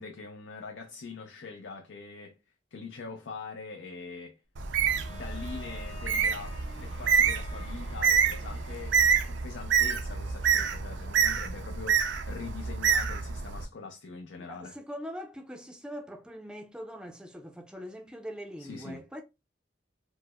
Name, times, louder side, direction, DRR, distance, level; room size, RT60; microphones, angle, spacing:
voice 1, 0.0-2.3 2.7-4.4 5.1-9.0 9.2-14.8 18.6-19.2, left 4 dB, 80° left, 0.5 m, -43 dB
Bird, 4.6-13.6, right 6 dB, 85° right, 0.4 m, -27 dB
Bowed string instrument, 4.8-9.7, left 4 dB, 30° left, 0.9 m, -51 dB
voice 2, 14.4-19.2, equal, 5° right, 0.4 m, -42 dB
4.5 x 2.1 x 2.2 m
head